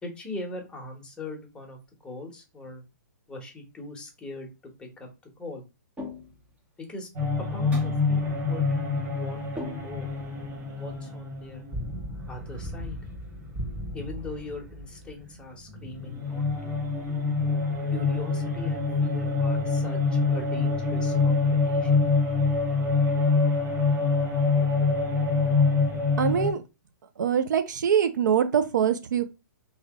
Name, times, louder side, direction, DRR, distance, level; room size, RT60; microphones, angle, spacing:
voice 1, 0.0-2.8 3.3-4.5 4.8-5.1 5.4-5.6 6.8-7.1 7.4-8.7 9.1-10.1 10.8-11.7 12.3-13.0 13.9-16.7 17.9-22.0, left 2 dB, 10° left, 1.1 m, -40 dB
sound 1, 6.0-6.5 7.7-8.1 9.6-10.3, left 2 dB, 10° right, 0.9 m, -39 dB
sound 2, 7.2-15.3 15.6-26.5, left 4 dB, 30° right, 1.6 m, -26 dB
voice 2, 26.2-26.6 27.2-29.3, right 8 dB, 70° right, 0.6 m, -23 dB
3.2 x 2.9 x 3.5 m
hypercardioid pair, 135°, 10 cm